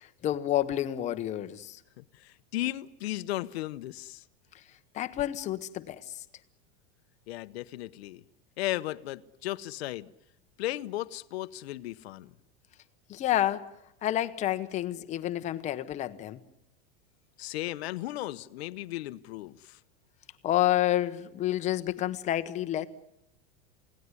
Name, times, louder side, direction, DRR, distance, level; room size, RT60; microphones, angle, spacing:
voice 1, 0.0-1.8 4.9-6.2 13.1-13.7 14.0-16.4 20.4-22.9, left 13 dB, 20° left, 1.0 m, -29 dB
voice 2, 2.0-4.2 7.3-8.2 8.6-10.1 10.6-12.3 17.4-19.8, left 16 dB, 70° left, 1.0 m, -35 dB
28.0 x 18.0 x 9.8 m
supercardioid pair, 170°, 32 cm